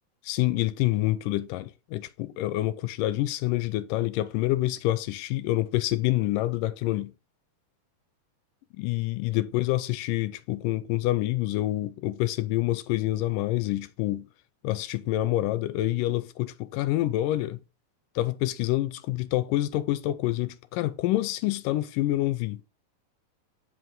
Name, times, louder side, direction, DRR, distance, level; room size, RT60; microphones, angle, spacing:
voice 1, 0.2-7.1 8.8-14.3 14.6-17.6 18.2-22.6, left 16 dB, 85° left, 2.1 m, -27 dB
7.5 x 5.1 x 3.8 m
omnidirectional pair, 3.8 m